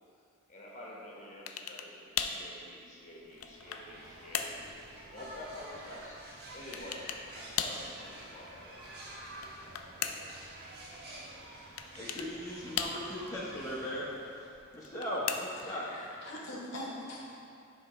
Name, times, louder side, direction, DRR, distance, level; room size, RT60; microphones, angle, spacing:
voice 1, 0.5-6.2 6.5-7.0 7.3-8.8, left 1 dB, 35° left, -3 dB, 1.1 m, -48 dB
sound 1, 1.5-1.9 2.2-2.5 3.1-3.9 4.3-4.6 6.7-7.3 7.6-7.9 9.3-10.4 11.8-12.3 12.8-13.3 14.7-15.7, left 8 dB, 90° left, 0.4 m, -36 dB
sound 2, 3.2-14.8, right 1 dB, 50° right, 1.1 m, -49 dB
voice 2, 12.0-14.1 14.7-15.9, equal, 15° left, -7 dB, 0.8 m, -38 dB
voice 3, 15.6-17.3, left 1 dB, 60° left, -3 dB, 0.8 m, -43 dB
7.5 x 3.2 x 4.8 m, 2.5 s
head